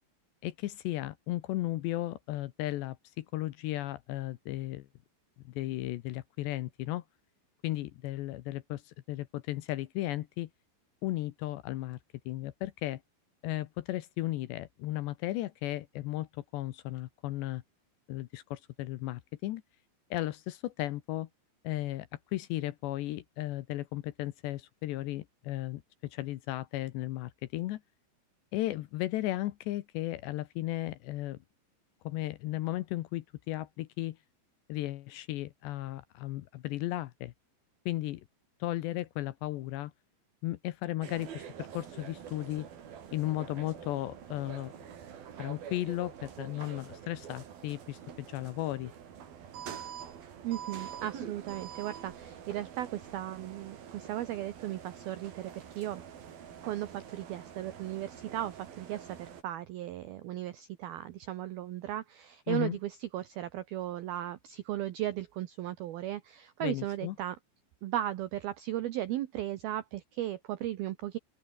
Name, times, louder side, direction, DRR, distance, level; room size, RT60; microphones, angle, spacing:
voice 1, 0.4-4.9 5.4-7.0 7.6-10.5 11.0-12.0 12.3-13.0 13.4-17.6 18.1-19.6 20.1-21.3 21.6-27.8 28.5-31.4 32.0-34.2 34.7-37.3 37.9-38.2 38.6-39.9 40.4-42.7 43.1-44.7 45.4-48.9 62.5-62.8 66.6-67.2, left 16 dB, 75° left, 2.8 m, -35 dB
sound 1, 41.0-59.4, right 8 dB, 50° right, 4.3 m, -46 dB
voice 2, 50.4-56.0 56.6-67.4 67.8-71.2, right 13 dB, 80° right, 2.2 m, -36 dB
open air
omnidirectional pair, 5.7 m